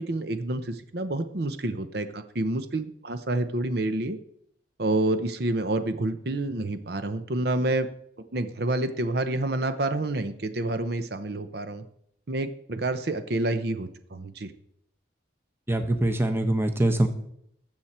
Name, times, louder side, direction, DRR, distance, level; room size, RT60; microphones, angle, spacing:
voice 1, 0.0-4.2 4.8-7.9 8.3-11.8 12.3-14.5, right 2 dB, 55° right, 10 dB, 0.8 m, -28 dB
voice 2, 15.7-17.1, right 1 dB, 10° right, 7 dB, 0.9 m, -23 dB
19.5 x 7.4 x 4.4 m, 0.72 s
head